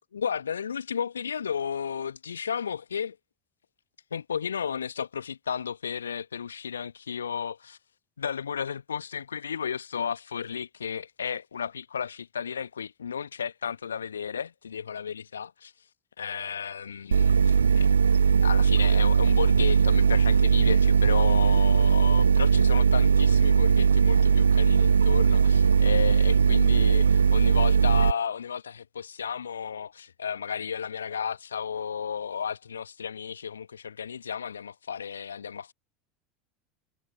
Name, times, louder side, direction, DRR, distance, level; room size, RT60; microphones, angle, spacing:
voice 1, 0.1-3.2 4.1-7.8 8.2-15.7 16.2-17.9 18.4-35.7, left 7 dB, 75° left, 1.1 m, -33 dB
sound 1, 17.1-28.1, right 6 dB, 75° right, 0.4 m, -20 dB
figure-of-eight pair, 75°, 0 cm